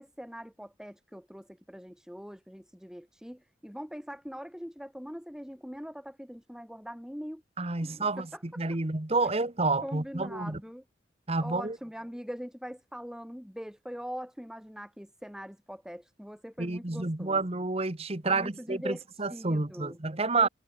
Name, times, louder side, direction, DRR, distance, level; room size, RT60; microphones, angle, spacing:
voice 1, 0.0-7.4 7.8-8.8 9.8-10.8 11.4-17.4 18.3-20.0 20.3-20.5, equal, 5° right, 2.6 m, -42 dB
voice 2, 7.6-8.3 8.6-10.6 11.3-11.8 16.6-20.5, right 3 dB, 35° right, 1.4 m, -29 dB
head